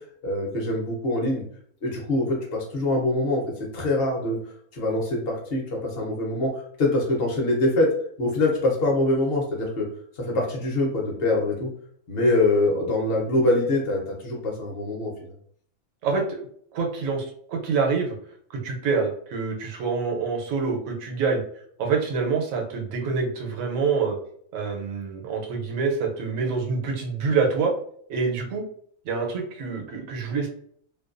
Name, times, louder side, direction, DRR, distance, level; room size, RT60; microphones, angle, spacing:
voice 1, 0.2-1.4 1.8-4.4 4.7-7.9 8.2-9.9 10.2-11.7 12.1-15.1, left 2 dB, 55° left, -1 dB, 0.8 m, -24 dB
voice 2, 16.0-16.4 16.7-18.1 18.5-21.4 21.8-24.2 24.5-27.7 28.1-28.6 29.0-30.5, right 5 dB, 80° right, 1 dB, 1.0 m, -26 dB
2.5 x 2.2 x 2.4 m, 0.62 s
omnidirectional pair, 1.4 m